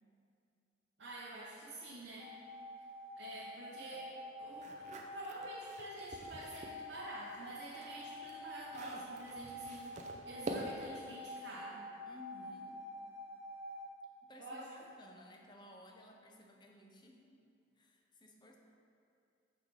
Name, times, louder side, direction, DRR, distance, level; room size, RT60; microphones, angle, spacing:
voice 1, 1.0-2.3 3.1-4.1 4.4-11.8 14.4-14.7, right 2 dB, 70° right, -5 dB, 0.8 m, -48 dB
sound 1, 2.2-13.9, left 1 dB, 10° right, 0.8 m, -48 dB
sound 2, 4.5-6.8 7.2-11.0, right 1 dB, 40° right, 0.5 m, -47 dB
voice 2, 12.1-12.9 14.2-17.5 17.8-18.6, left 1 dB, 25° left, 1 dB, 0.6 m, -57 dB
6.0 x 4.9 x 4.7 m, 2.5 s
head